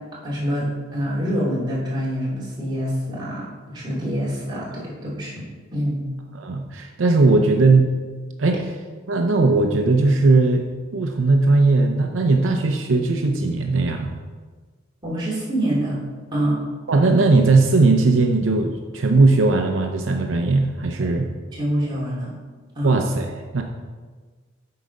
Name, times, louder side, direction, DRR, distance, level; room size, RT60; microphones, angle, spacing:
voice 1, 0.2-5.4 5.7-6.0 15.0-16.0 16.3-16.6 21.5-22.3 22.7-23.0, equal, 25° right, -7 dB, 2.7 m, -25 dB
voice 2, 6.3-7.9 8.4-8.6 9.1-10.6 10.9-14.1 16.9-21.3 22.8-23.6, right 3 dB, 80° right, 4 dB, 0.6 m, -18 dB
7.8 x 4.8 x 5.2 m, 1.4 s
head